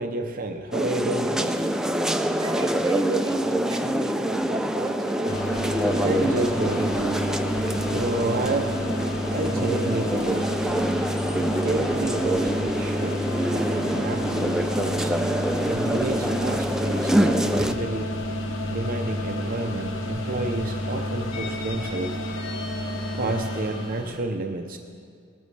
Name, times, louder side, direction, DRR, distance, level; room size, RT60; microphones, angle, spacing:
voice 1, 0.0-1.6 5.9-7.2 7.5-8.8 9.3-10.5 11.6-15.2 15.7-18.0 18.7-22.1 23.2-24.8, right 2 dB, 45° right, 4 dB, 0.6 m, -30 dB
sound 1, 0.7-17.7, right 1 dB, 5° right, 0.4 m, -26 dB
voice 2, 2.4-5.4 17.5-17.8, right 2 dB, 20° right, 2 dB, 0.9 m, -33 dB
sound 2, 5.3-24.2, left 1 dB, 75° left, 1.3 m, -30 dB
20.0 x 13.5 x 3.3 m, 2.3 s
head